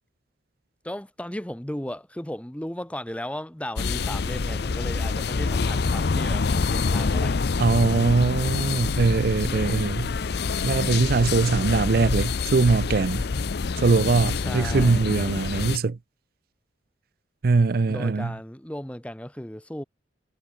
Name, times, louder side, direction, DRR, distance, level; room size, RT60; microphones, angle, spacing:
voice 1, 0.8-7.4 14.4-15.0 17.9-19.8, left 1 dB, 5° left, 1.0 m, -36 dB
sound 1, 3.8-15.8, left 4 dB, 60° left, 0.6 m, -26 dB
voice 2, 7.6-10.1 10.6-13.2 13.8-16.0 17.4-18.3, right 4 dB, 55° right, 0.5 m, -22 dB
head